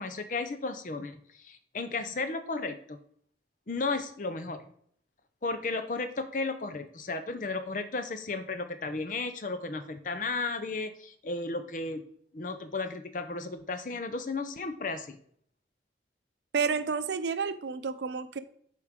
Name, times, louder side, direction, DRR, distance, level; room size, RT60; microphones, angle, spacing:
voice 1, 0.0-3.0 3.7-4.6 5.4-12.0 12.3-15.2, left 3 dB, 45° left, 9 dB, 0.6 m, -34 dB
voice 2, 16.5-18.4, right 5 dB, 75° right, 12 dB, 0.5 m, -30 dB
8.1 x 4.6 x 3.6 m, 0.63 s
head